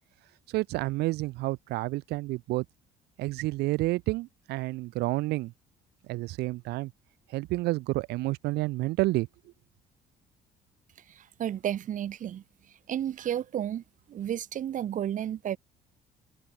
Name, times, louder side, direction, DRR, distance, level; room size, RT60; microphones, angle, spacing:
voice 1, 0.5-2.7 3.2-5.5 6.1-6.9 7.3-9.3, right 20 dB, 75° right, 0.4 m, -29 dB
voice 2, 11.1-12.4 12.9-15.6, right 10 dB, 50° right, 1.0 m, -32 dB
cardioid pair, 110°, 17 cm